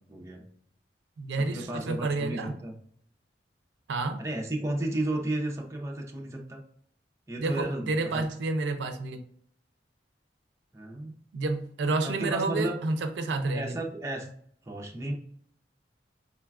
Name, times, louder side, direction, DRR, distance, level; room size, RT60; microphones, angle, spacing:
voice 1, 0.1-0.5 1.4-2.7 4.2-6.6 7.3-8.3 10.7-11.2 12.0-12.8 13.5-14.3 14.6-15.1, right 1 dB, 15° right, 0 dB, 0.4 m, -33 dB
voice 2, 1.2-2.5 3.9-4.2 7.4-9.2 11.3-13.8, right 3 dB, 80° right, 8 dB, 0.4 m, -29 dB
3.8 x 2.2 x 2.3 m, 0.63 s
head